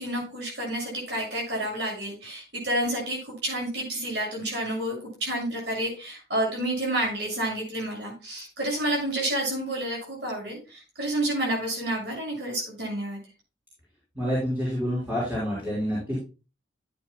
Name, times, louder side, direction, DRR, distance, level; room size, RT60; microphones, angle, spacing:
voice 1, 0.0-13.2, right 1 dB, 60° right, -2 dB, 6.7 m, -29 dB
voice 2, 14.1-16.2, equal, 10° right, -8 dB, 5.2 m, -28 dB
14.5 x 9.2 x 2.2 m, 0.31 s
head